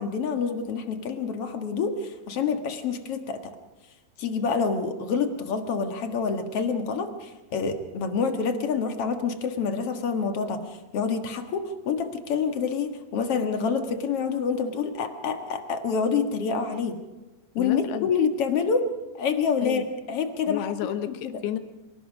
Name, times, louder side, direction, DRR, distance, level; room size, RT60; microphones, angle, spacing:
voice 1, 0.0-3.5 4.2-17.0 17.5-18.8 19.1-20.7 21.1-21.3, left 5 dB, 50° left, 6 dB, 1.8 m, -27 dB
voice 2, 17.6-18.1 19.6-19.8 20.5-21.6, left 10 dB, 80° left, 9 dB, 3.3 m, -31 dB
25.5 x 18.5 x 6.2 m, 1.1 s
omnidirectional pair, 4.6 m